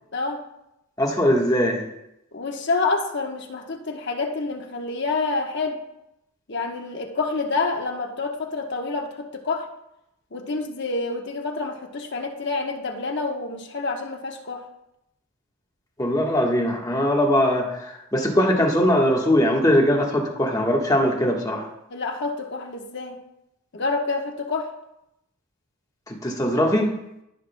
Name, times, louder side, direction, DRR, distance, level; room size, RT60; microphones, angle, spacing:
voice 1, 0.1-0.5 2.3-5.8 6.5-9.7 10.3-14.7 21.9-23.2 23.7-24.7, left 3 dB, 50° left, 2 dB, 1.1 m, -28 dB
voice 2, 1.0-1.8 16.0-21.6 26.1-26.9, equal, 15° left, -1 dB, 1.3 m, -21 dB
16.0 x 6.1 x 2.2 m, 0.84 s
head